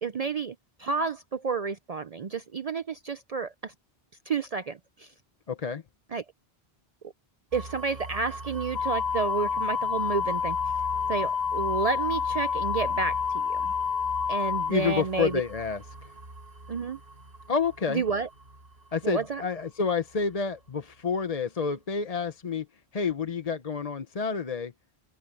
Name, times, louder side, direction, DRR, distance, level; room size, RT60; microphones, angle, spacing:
voice 1, 0.0-3.7 4.3-5.1 6.1-6.2 7.5-10.6 11.1-13.7 14.3-15.4 16.7-17.0 17.9-18.3 19.0-19.4, right 4 dB, 45° right, 0.6 m, -30 dB
voice 2, 5.5-5.8 14.7-15.8 17.5-18.0 18.9-22.7 22.9-24.7, left 5 dB, 40° left, 0.8 m, -29 dB
sound 1, 7.5-21.3, right 2 dB, 70° right, 6.0 m, -42 dB
sound 2, 8.7-14.7, left 7 dB, 75° left, 1.1 m, -28 dB
open air
omnidirectional pair, 1.1 m